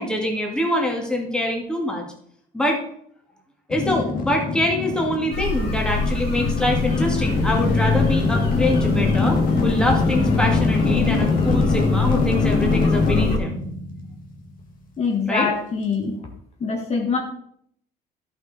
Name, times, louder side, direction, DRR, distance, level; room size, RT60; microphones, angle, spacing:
voice 1, 0.0-2.0 2.5-2.8 3.7-9.4 9.6-13.6 15.3-15.5, left 1 dB, 5° left, 0 dB, 2.2 m, -24 dB
sound 1, 3.7-14.7, left 4 dB, 55° left, 1.9 m, -22 dB
sound 2, 5.3-13.4, left 2 dB, 75° left, 2.4 m, -27 dB
voice 2, 15.0-16.2 16.6-17.2, left 5 dB, 40° left, 1 dB, 1.7 m, -24 dB
11.5 x 5.8 x 4.2 m, 0.67 s
cardioid pair, 110°, 17 cm